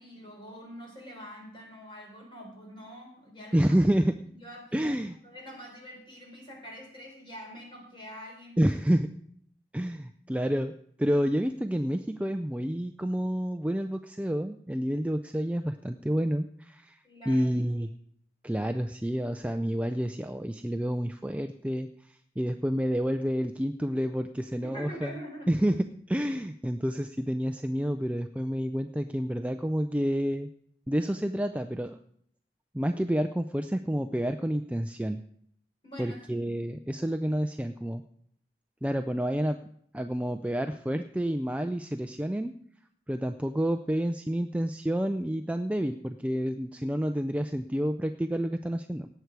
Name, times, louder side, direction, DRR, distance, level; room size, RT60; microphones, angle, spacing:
voice 1, 0.0-3.8 4.3-4.9 5.2-8.6 17.0-17.5 24.6-25.5 35.8-36.3, equal, 30° left, -1 dB, 4.1 m, -45 dB
voice 2, 3.5-4.1 4.7-5.2 8.6-9.1 9.7-10.7 11.0-17.0 17.3-17.9 18.4-25.2 25.5-25.7 26.1-30.5 30.9-32.0 32.7-35.2 36.0-38.0 38.8-39.6 39.9-42.6 43.1-49.1, equal, 10° right, 7 dB, 0.4 m, -29 dB
18.0 x 8.0 x 4.7 m, 0.65 s
head